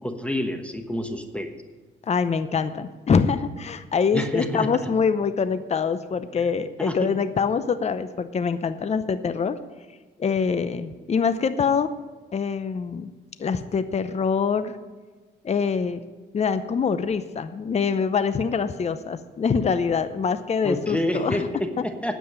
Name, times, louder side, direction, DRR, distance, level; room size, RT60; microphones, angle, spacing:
voice 1, 0.0-1.6 4.1-4.7 6.8-7.1 20.6-22.1, left 1 dB, 5° left, 5 dB, 1.1 m, -28 dB
voice 2, 2.0-9.6 10.2-11.9 12.3-13.1 13.4-14.8 15.4-16.0 16.3-21.5 21.8-21.9, left 5 dB, 35° left, 11 dB, 0.7 m, -24 dB
9.6 x 7.7 x 8.8 m, 1.3 s
cardioid pair, 90°, 20 cm